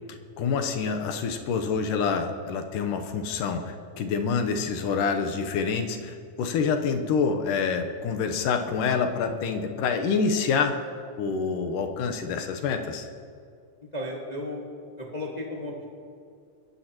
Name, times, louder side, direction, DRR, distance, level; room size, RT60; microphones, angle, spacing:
voice 1, 0.1-10.8 11.2-13.1, left 5 dB, 85° left, 5 dB, 2.5 m, -27 dB
voice 2, 13.9-14.6 15.0-15.9, left 1 dB, 20° left, -3 dB, 1.0 m, -34 dB
22.5 x 15.0 x 3.0 m, 2.3 s
omnidirectional pair, 3.7 m